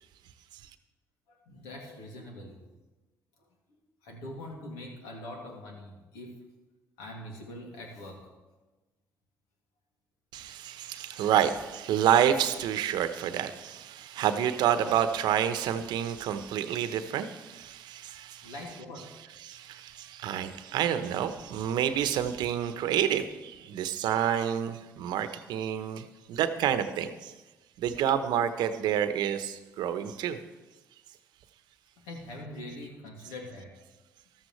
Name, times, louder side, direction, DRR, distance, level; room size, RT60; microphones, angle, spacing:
voice 1, 1.3-2.6 4.0-6.4 7.0-8.3 18.4-19.1 32.0-33.7, left 1 dB, 80° left, 0 dB, 2.6 m, -43 dB
voice 2, 10.3-18.5 19.4-27.3 27.8-30.4, right 9 dB, 70° right, 10 dB, 0.9 m, -29 dB
14.0 x 13.0 x 3.2 m, 1.1 s
hypercardioid pair, 50°, 8 cm